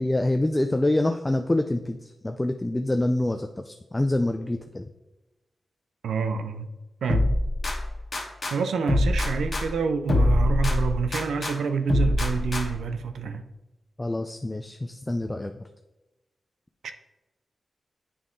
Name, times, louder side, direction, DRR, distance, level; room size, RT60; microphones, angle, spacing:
voice 1, 0.0-4.9 14.0-15.5, left 1 dB, 20° left, 6 dB, 0.4 m, -26 dB
voice 2, 6.0-6.7 7.0-7.4 8.5-13.4 16.8-16.9, right 6 dB, 90° right, 9 dB, 0.5 m, -27 dB
sound 1, 7.1-8.5 8.9-11.5 11.9-12.9, left 2 dB, 50° left, 1.4 m, -25 dB
8.5 x 3.6 x 3.7 m, 1.0 s
cardioid pair, 50°, 0 cm